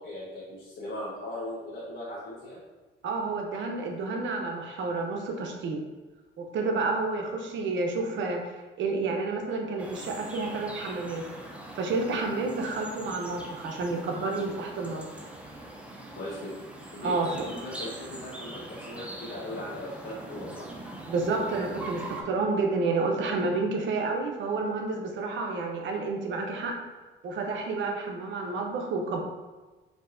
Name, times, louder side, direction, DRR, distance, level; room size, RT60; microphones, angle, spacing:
voice 1, 0.0-2.6 16.2-16.5 16.9-20.7, left 1 dB, 90° left, -9 dB, 1.1 m, -38 dB
voice 2, 3.0-5.8 6.4-8.4 8.8-11.2 11.8-15.1 17.0-17.3 21.1-26.7 27.2-29.2, right 3 dB, 70° right, 1 dB, 0.8 m, -30 dB
sound 1, 9.8-22.2, right 1 dB, 5° right, 0.6 m, -42 dB
4.4 x 2.7 x 2.6 m, 1.3 s
cardioid pair, 90°, 20 cm